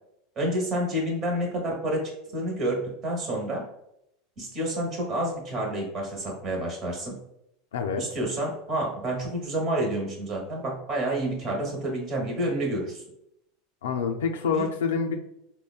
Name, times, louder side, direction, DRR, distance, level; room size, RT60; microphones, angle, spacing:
voice 1, 0.4-3.6 4.4-7.2 8.0-13.0 14.5-14.7, right 1 dB, 40° right, -1 dB, 1.1 m, -29 dB
voice 2, 7.7-8.0 13.8-15.2, left 5 dB, 90° left, 4 dB, 0.4 m, -27 dB
3.5 x 2.2 x 2.3 m, 0.80 s
supercardioid pair, 105°, 0 cm